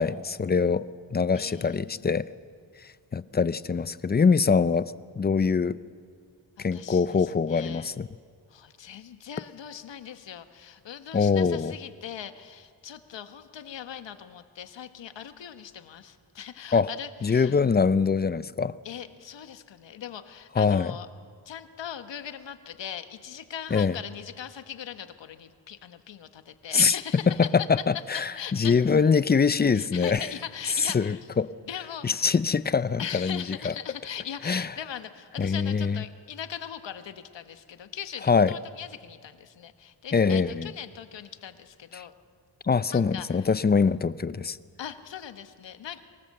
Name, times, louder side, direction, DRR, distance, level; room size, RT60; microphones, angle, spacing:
voice 1, 0.0-2.3 2.8-5.8 6.6-8.1 11.1-11.7 16.7-16.9 17.2-18.8 20.6-20.9 23.7-24.0 26.7-27.0 27.3-30.3 30.8-31.5 32.0-33.7 34.4-34.7 35.4-36.0 38.3-38.5 40.1-40.7 41.9-42.1 42.6-44.6, left 5 dB, 25° left, 16 dB, 0.5 m, -24 dB
voice 2, 1.3-2.1 6.6-7.9 8.5-17.6 18.8-21.1 21.4-27.4 28.3-28.8 29.7-31.3 31.7-32.3 33.0-42.1 42.9-43.5 44.8-46.0, left 9 dB, 75° left, 9 dB, 1.3 m, -40 dB
24.0 x 19.5 x 7.7 m, 2.2 s
wide cardioid pair, 115°, 44 cm